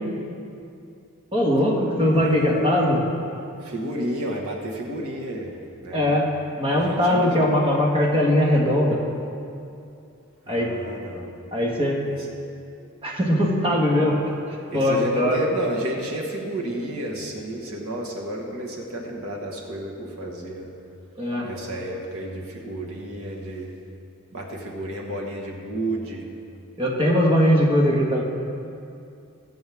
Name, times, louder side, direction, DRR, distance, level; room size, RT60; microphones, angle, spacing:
voice 1, 1.3-3.0 5.9-6.3 6.6-9.0 10.5-10.7 11.5-12.0 13.0-14.2 14.7-15.4 21.2-21.5 26.8-28.2, left 1 dB, 25° right, -2 dB, 1.7 m, -20 dB
voice 2, 2.1-2.6 3.6-6.2 6.7-7.5 10.5-11.3 12.1-12.3 14.7-20.7 21.4-23.7 24.3-26.3, right 1 dB, 90° right, -1 dB, 1.8 m, -31 dB
22.5 x 7.7 x 3.6 m, 2.6 s
head